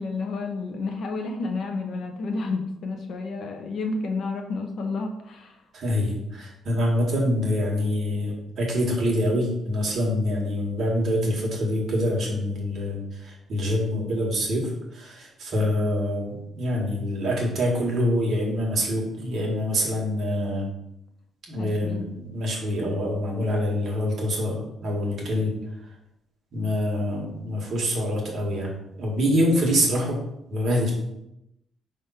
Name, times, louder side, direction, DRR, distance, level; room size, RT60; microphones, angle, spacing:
voice 1, 0.0-5.6 21.5-22.0, left 3 dB, 50° left, 4 dB, 0.8 m, -30 dB
voice 2, 5.7-20.7 21.5-25.5 26.5-28.7 29.0-30.2 30.5-30.9, equal, 40° right, -2 dB, 1.6 m, -25 dB
5.0 x 3.6 x 5.6 m, 0.84 s
cardioid pair, 170°, 0 cm